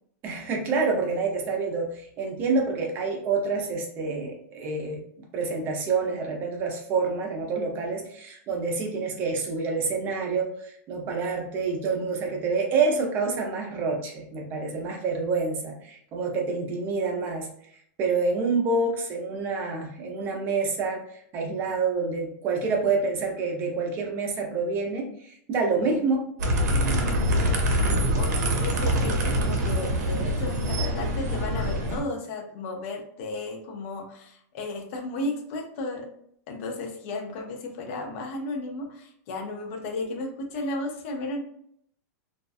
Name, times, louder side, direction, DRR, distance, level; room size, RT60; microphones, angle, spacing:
voice 1, 0.2-5.0 5.3-17.5 18.0-26.3, right 4 dB, 25° right, 1 dB, 0.5 m, -27 dB
sound 1, 26.4-32.0, equal, 80° right, 0.6 m, -24 dB
voice 2, 28.2-36.1 36.5-41.4, left 2 dB, 45° left, 2 dB, 0.5 m, -34 dB
2.3 x 2.2 x 2.4 m, 0.67 s
supercardioid pair, 170°, 9 cm